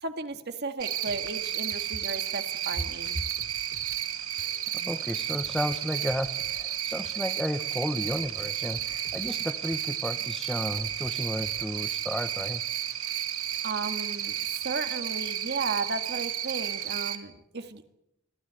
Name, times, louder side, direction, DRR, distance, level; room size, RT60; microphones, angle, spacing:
voice 1, 0.0-3.2 13.6-14.4 14.6-17.9, right 3 dB, 50° right, 7 dB, 2.0 m, -34 dB
Cricket, 0.8-17.2, right 11 dB, 85° right, 2.0 m, -32 dB
sound 1, 1.0-10.3 10.7-11.8, left 1 dB, 60° left, 3.2 m, -53 dB
voice 2, 4.7-12.6, equal, 5° left, 8 dB, 0.9 m, -33 dB
26.0 x 16.5 x 8.9 m, 0.83 s
head